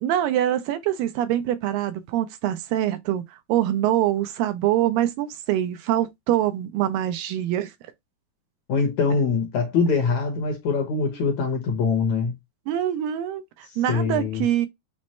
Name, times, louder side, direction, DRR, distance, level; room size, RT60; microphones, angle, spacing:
voice 1, 0.0-3.2 3.5-7.7 11.0-11.1 12.7-13.4 13.8-14.7, right 12 dB, 80° right, 2.2 m, -24 dB
voice 2, 8.7-12.3 13.9-14.5, left 5 dB, 65° left, 1.9 m, -23 dB
6.1 x 2.1 x 4.2 m
omnidirectional pair, 4.1 m